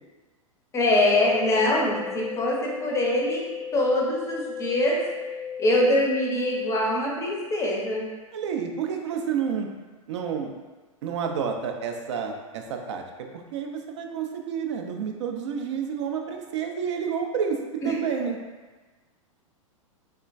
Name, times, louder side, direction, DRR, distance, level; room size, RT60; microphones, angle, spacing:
voice 1, 0.7-3.4 3.7-5.0 5.6-8.1 17.8-18.0, left 1 dB, 15° left, -2 dB, 0.5 m, -23 dB
sound 1, 1.0-7.0, left 7 dB, 70° left, 0.4 m, -35 dB
voice 2, 8.3-9.7 10.1-10.5 11.0-18.4, right 7 dB, 55° right, 3 dB, 0.4 m, -30 dB
3.2 x 2.1 x 2.4 m, 1.3 s
figure-of-eight pair, 100°, 17 cm